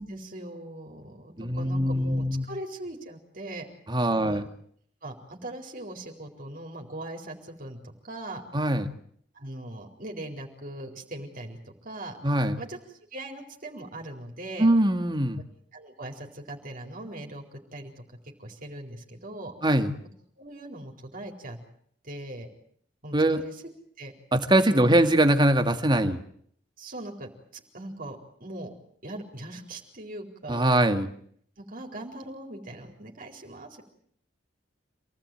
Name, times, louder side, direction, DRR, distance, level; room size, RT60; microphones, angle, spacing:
voice 1, 0.0-3.7 4.1-4.4 5.0-8.4 9.3-12.2 12.6-12.8 13.1-14.7 15.7-18.0 18.4-19.5 20.4-21.6 22.0-22.5 23.0-23.5 24.0-24.1 24.7-24.9 26.8-28.7 29.0-30.7 31.6-33.8, right 1 dB, 50° right, 1 dB, 4.4 m, -40 dB
voice 2, 1.4-2.4 3.9-4.5 8.5-8.9 12.2-12.6 14.6-15.4 19.6-19.9 23.1-23.4 24.3-26.2 30.5-31.1, right 1 dB, 25° right, 7 dB, 2.2 m, -22 dB
27.5 x 18.5 x 9.3 m, 0.64 s
head